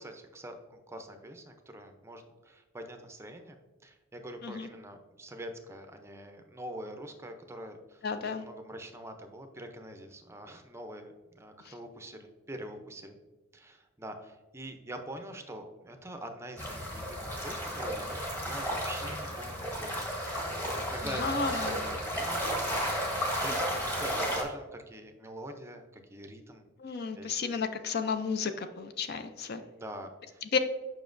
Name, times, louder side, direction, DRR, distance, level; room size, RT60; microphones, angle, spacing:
voice 1, 0.0-3.6 3.8-8.0 8.3-13.2 13.5-20.4 20.8-27.4 29.7-30.4, right 1 dB, 10° right, 6 dB, 0.5 m, -44 dB
voice 2, 8.0-8.4 21.1-21.8 26.8-29.6 30.5-30.6, left 5 dB, 50° left, 9 dB, 0.4 m, -32 dB
sound 1, 16.6-24.4, equal, 10° left, 1.1 m, -33 dB
7.2 x 5.6 x 2.5 m, 1.2 s
head